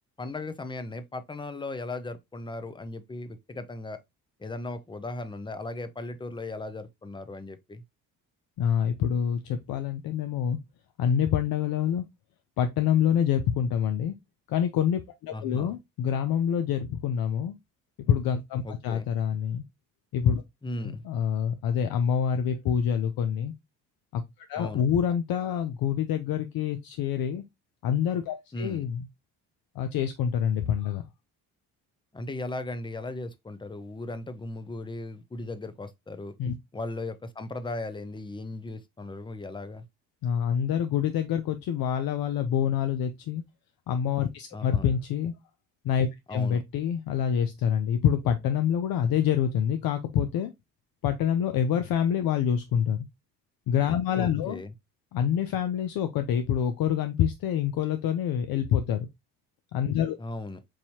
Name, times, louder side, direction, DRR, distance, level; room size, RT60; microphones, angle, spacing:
voice 1, 0.2-4.0 4.4-7.8 15.3-15.8 18.6-19.1 20.6-21.0 24.6-24.8 28.5-28.8 32.1-36.3 36.7-39.8 44.5-44.9 46.3-46.6 54.2-54.7 60.2-60.6, left 2 dB, 10° left, 0.6 m, -37 dB
voice 2, 8.6-10.6 11.0-12.0 12.6-14.1 14.5-17.6 18.1-19.6 20.1-20.4 20.8-23.5 24.1-24.2 24.5-27.4 27.8-29.1 29.8-31.0 36.4-36.5 40.2-43.4 43.9-45.3 45.8-50.5 51.0-53.1 53.7-54.6 55.1-59.1 59.7-60.2, left 8 dB, 60° left, 0.6 m, -26 dB
4.7 x 2.7 x 2.7 m
supercardioid pair, 65°, 40 cm